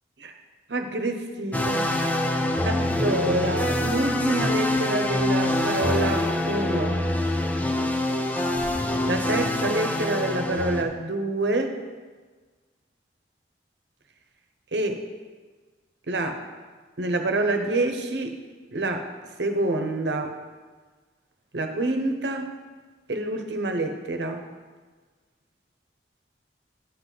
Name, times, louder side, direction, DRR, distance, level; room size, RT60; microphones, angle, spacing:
voice 1, 0.7-1.9 2.6-7.0 9.1-11.8 14.7-15.0 16.1-16.4 17.0-18.4 18.7-19.1 19.4-20.3 21.5-22.5 23.1-24.5, right 2 dB, 80° right, 5 dB, 0.9 m, -27 dB
sound 1, 1.5-10.8, left 1 dB, 10° left, 0.4 m, -25 dB
9.9 x 4.1 x 7.5 m, 1.4 s
head